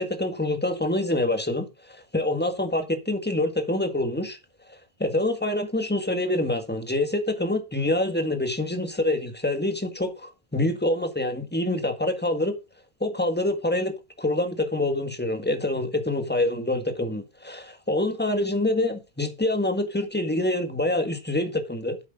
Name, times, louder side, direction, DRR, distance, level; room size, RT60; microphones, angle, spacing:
voice 1, 0.0-4.4 4.7-12.6 13.0-22.0, left 1 dB, 10° left, 1.7 m, -26 dB
10.0 x 8.1 x 3.8 m
omnidirectional pair, 1.1 m